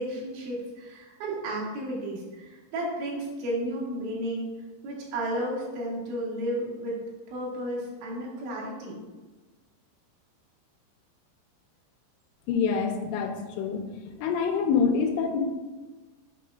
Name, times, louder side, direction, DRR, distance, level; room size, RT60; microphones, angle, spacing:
voice 1, 0.0-4.5 4.8-7.0 7.3-9.0, right 1 dB, 85° right, -4 dB, 4.1 m, -33 dB
voice 2, 12.5-13.8 14.2-15.4, left 6 dB, 80° left, 4 dB, 2.9 m, -26 dB
9.2 x 6.0 x 2.3 m, 1.2 s
omnidirectional pair, 5.3 m